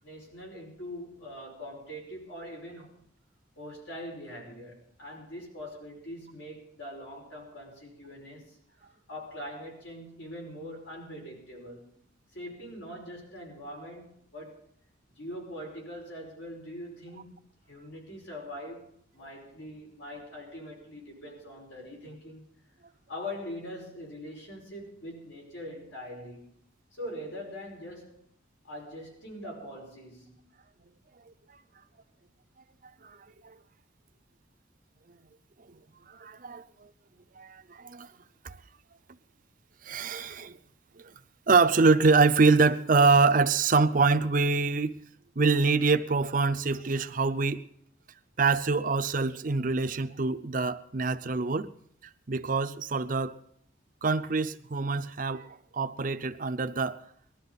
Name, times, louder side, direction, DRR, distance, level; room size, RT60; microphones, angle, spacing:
voice 1, 0.0-3.0 3.6-12.0 12.3-14.6 15.1-17.4 17.7-22.4 23.1-26.5 26.9-28.2 28.6-30.5, equal, 75° left, 5.3 m, -42 dB
voice 2, 36.1-36.6 37.4-38.1 38.4-38.6 39.8-40.6 41.0-41.1 41.5-45.0 45.4-47.6 48.4-51.7 52.3-53.4 54.0-55.5 55.7-57.0, right 4 dB, 40° right, 0.6 m, -25 dB
20.0 x 12.5 x 4.0 m
head